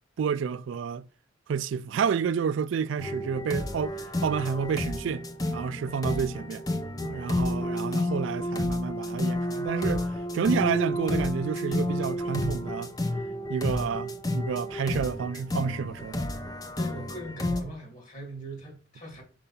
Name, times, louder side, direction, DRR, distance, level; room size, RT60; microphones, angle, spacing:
voice 1, 0.2-1.1 1.5-6.6 7.0-10.0 10.3-12.9 13.5-16.3, right 6 dB, 65° right, 0.3 m, -30 dB
sound 1, 3.0-17.6, left 1 dB, 20° left, 0.6 m, -31 dB
voice 2, 16.7-19.2, right 1 dB, 35° left, 2.6 m, -41 dB
5.5 x 5.3 x 4.2 m
head